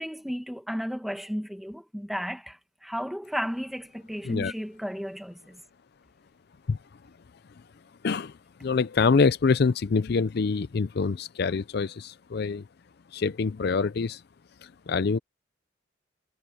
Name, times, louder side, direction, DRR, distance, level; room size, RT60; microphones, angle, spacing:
voice 1, 0.0-5.6, equal, ahead, 1.7 m, -34 dB
voice 2, 8.0-12.7 13.1-14.2 14.6-15.2, left 4 dB, 55° left, 0.4 m, -25 dB
head